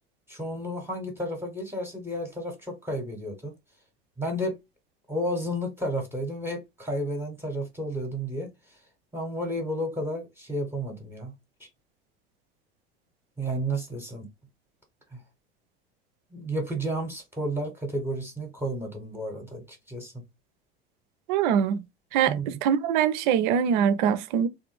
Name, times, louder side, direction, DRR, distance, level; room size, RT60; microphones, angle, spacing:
voice 1, 0.3-3.5 4.2-4.6 5.1-8.8 9.1-11.3 11.6-11.7 13.4-14.3 15.1-15.2 16.3-20.1 22.3-22.5, equal, 5° right, 0.9 m, -32 dB
voice 2, 21.3-21.8 22.1-24.5, right 8 dB, 50° right, 0.5 m, -23 dB
3.4 x 2.3 x 3.0 m
figure-of-eight pair, 70°, 30 cm